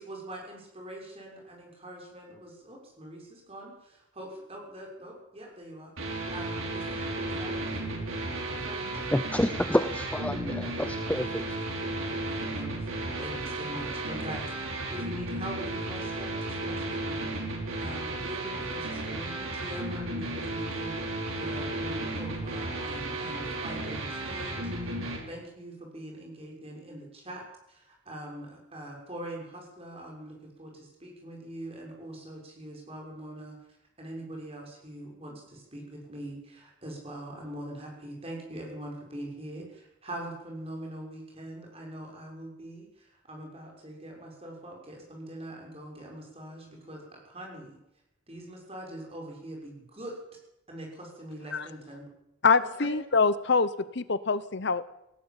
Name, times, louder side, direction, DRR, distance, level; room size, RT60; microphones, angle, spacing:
voice 1, 0.0-8.0 8.4-9.0 12.0-17.3 17.8-21.0 21.4-33.6 34.0-47.8 48.3-50.1 50.7-52.1 52.6-52.9, right 1 dB, 30° right, 0 dB, 6.4 m, -43 dB
sound 1, 6.0-25.2, right 2 dB, 85° right, 5.8 m, -34 dB
voice 2, 9.1-11.6, left 1 dB, 5° left, 9 dB, 0.7 m, -28 dB
voice 3, 52.4-54.9, left 4 dB, 55° left, 15 dB, 0.8 m, -25 dB
18.0 x 16.0 x 8.9 m, 0.85 s
head